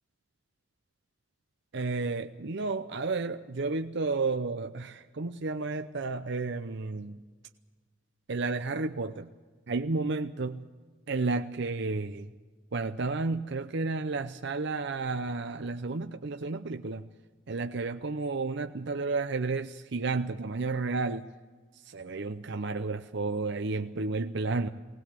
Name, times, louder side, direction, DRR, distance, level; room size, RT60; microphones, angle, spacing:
voice 1, 1.7-7.2 8.3-9.3 9.7-10.7 11.1-12.3 12.7-17.1 17.5-21.3 21.7-24.7, right 3 dB, 60° right, 8 dB, 0.7 m, -32 dB
20.5 x 19.0 x 7.5 m, 1.4 s
head